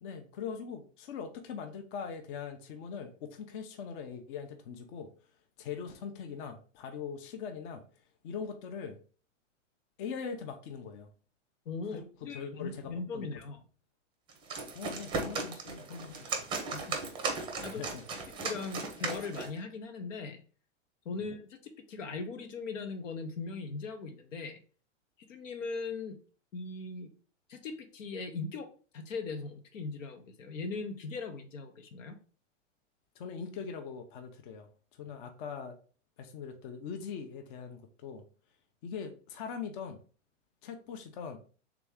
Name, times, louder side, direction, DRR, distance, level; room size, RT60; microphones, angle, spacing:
voice 1, 0.0-5.1 5.6-7.8 8.2-9.0 10.0-11.1 11.9-13.3 14.7-16.5 17.6-18.0 21.1-21.2 33.2-34.7 35.0-35.8 36.2-38.2 38.8-40.0 40.6-41.4, left 6 dB, 45° left, 6 dB, 0.7 m, -41 dB
voice 2, 11.7-13.6 16.7-17.0 17.3-17.8 18.4-20.4 21.0-24.6 25.3-26.2 26.5-27.1 27.5-32.2, left 4 dB, 85° left, 7 dB, 1.0 m, -39 dB
sound 1, 14.3-19.6, right 4 dB, 15° right, 0.6 m, -36 dB
3.5 x 3.0 x 3.5 m, 0.39 s
hypercardioid pair, 140°, 37 cm